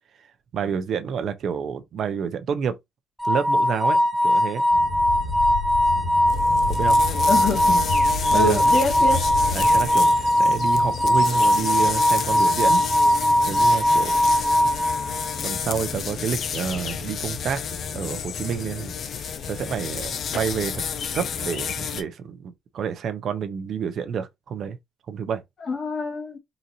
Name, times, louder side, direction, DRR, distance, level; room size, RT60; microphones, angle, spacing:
voice 1, 0.5-2.8 3.2-4.6 6.7-7.0 8.3-8.6 9.5-12.8 13.4-14.2 15.4-17.6 17.9-19.2 19.5-20.8 21.1-24.8 25.1-25.4, right 7 dB, 60° right, 0.6 m, -29 dB
sound 1, 3.2-15.4, left 1 dB, ahead, 0.4 m, -20 dB
sound 2, 4.7-9.9, left 3 dB, 85° left, 2.1 m, -31 dB
sound 3, 6.2-22.0, left 7 dB, 55° left, 0.5 m, -31 dB
voice 2, 7.3-7.9 8.3-9.2 25.6-26.4, left 2 dB, 40° left, 1.6 m, -25 dB
3.9 x 2.6 x 2.8 m
cardioid pair, 120°, 0 cm